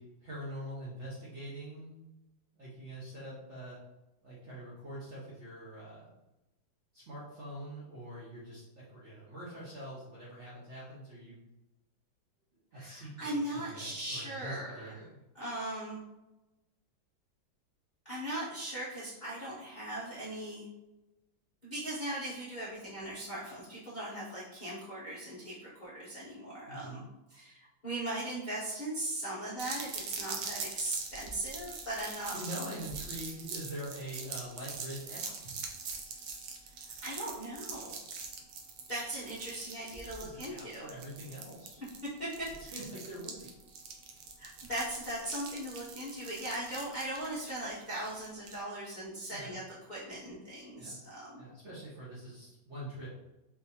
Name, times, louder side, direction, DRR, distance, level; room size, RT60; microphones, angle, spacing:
voice 1, 0.0-2.1 2.6-3.8 4.2-6.1 6.9-11.4 12.7-15.2 26.7-27.0 32.3-35.6 40.2-41.8 42.6-43.5 49.3-49.6 50.8-51.0 51.3-53.1, right 1 dB, 55° right, -7 dB, 0.8 m, -44 dB
voice 2, 12.7-14.9 15.3-16.0 18.0-20.7 21.6-27.0 27.3-32.4 32.7-32.8 37.0-37.9 38.9-40.9 42.0-42.7 44.4-49.6 49.9-51.4, right 1 dB, 45° left, -9 dB, 0.5 m, -39 dB
sound 1, 29.6-48.6, right 5 dB, 75° right, 1.1 m, -43 dB
4.1 x 2.6 x 2.7 m, 0.97 s
omnidirectional pair, 2.1 m